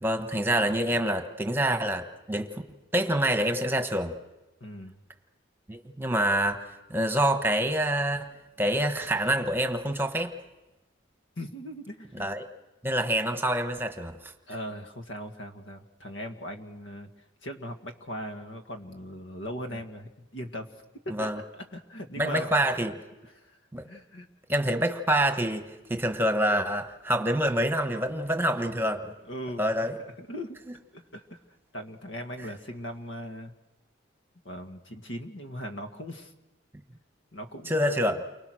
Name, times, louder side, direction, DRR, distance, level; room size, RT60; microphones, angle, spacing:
voice 1, 0.0-2.5 2.9-4.1 5.7-10.3 12.2-12.4 12.8-14.3 21.1-21.4 22.2-22.9 23.7-23.8 24.5-29.1 29.6-29.9 37.7-38.2, right 1 dB, 10° right, 6 dB, 1.2 m, -26 dB
voice 2, 4.6-4.9 11.4-12.3 14.5-17.1 17.4-20.7 21.1-22.5 23.3-23.6 23.8-24.3 28.3-28.4 29.3-29.9 30.2-31.4 31.7-33.5 34.5-36.3 37.3-38.2, equal, 85° left, 6 dB, 2.0 m, -39 dB
29.5 x 24.5 x 6.3 m, 1.0 s
head